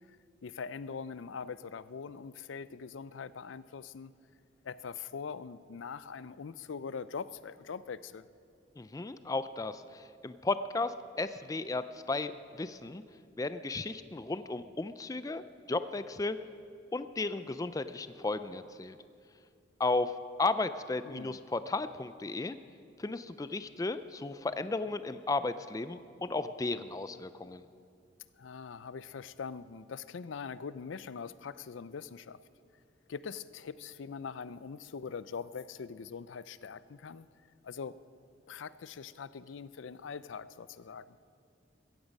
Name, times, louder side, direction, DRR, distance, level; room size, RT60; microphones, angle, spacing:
voice 1, 0.4-4.1 4.6-8.2 21.0-21.4 28.4-32.4 33.1-37.3 37.6-38.0 38.5-41.1, left 5 dB, 75° left, 16 dB, 0.5 m, -42 dB
voice 2, 8.8-13.0 13.4-15.4 15.7-16.4 16.9-19.0 19.8-22.6 23.0-27.7, left 3 dB, 20° left, 12 dB, 0.4 m, -34 dB
15.0 x 15.0 x 5.3 m, 2.4 s
head